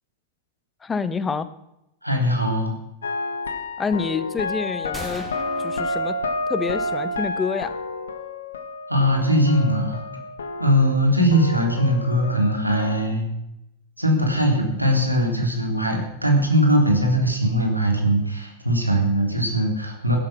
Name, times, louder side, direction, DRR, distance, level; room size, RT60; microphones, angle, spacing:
voice 1, 0.8-1.5 3.8-5.3 5.6-6.2 6.5-7.8, left 5 dB, 15° left, 14 dB, 1.0 m, -27 dB
voice 2, 2.0-2.7 8.9-10.0 10.6-13.3 14.0-20.2, equal, 90° right, 2 dB, 3.3 m, -20 dB
sound 1, 3.0-11.0 11.3-13.1, left 2 dB, 70° left, 1.6 m, -30 dB
sound 2, 4.9-6.8, right 2 dB, 10° right, 2.9 m, -40 dB
15.0 x 12.0 x 6.1 m, 0.85 s
figure-of-eight pair, 90°, 0 cm